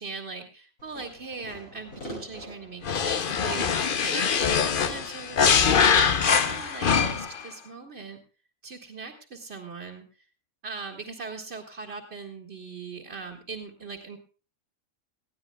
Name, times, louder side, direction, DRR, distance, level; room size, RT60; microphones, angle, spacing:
voice 1, 0.0-8.2 8.6-10.3 10.6-14.2, right 4 dB, 45° right, -1 dB, 2.2 m, -40 dB
Fireworks, 0.8-6.0, left 1 dB, 80° left, 7.2 m, -44 dB
sound 1, 2.8-7.4, left 6 dB, 45° left, 0.9 m, -23 dB
20.0 x 15.0 x 2.3 m, 0.38 s
omnidirectional pair, 1.4 m